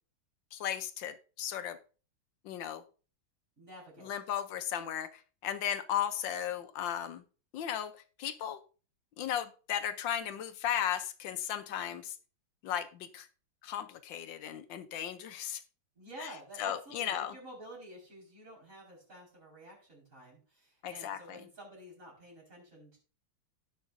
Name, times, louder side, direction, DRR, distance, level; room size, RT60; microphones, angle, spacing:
voice 1, 0.5-1.8 2.4-2.8 4.0-7.2 7.5-7.9 8.2-8.6 9.2-12.2 12.6-13.3 13.6-15.6 16.2-16.3 16.6-17.3 20.8-21.4, left 10 dB, 70° left, 10 dB, 1.4 m, -35 dB
voice 2, 3.6-4.1 16.0-23.0, equal, 40° right, -3 dB, 5.2 m, -50 dB
17.0 x 6.0 x 2.6 m, 0.36 s
omnidirectional pair, 2.2 m